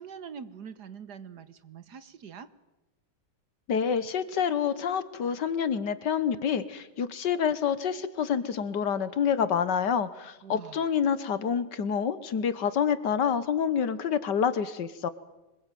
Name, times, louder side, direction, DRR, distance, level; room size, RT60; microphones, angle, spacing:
voice 1, 0.0-2.5 10.4-10.9, right 7 dB, 60° right, 14 dB, 1.6 m, -44 dB
voice 2, 3.7-15.1, left 7 dB, 60° left, 14 dB, 1.7 m, -27 dB
25.5 x 21.5 x 9.2 m, 1.0 s
omnidirectional pair, 2.1 m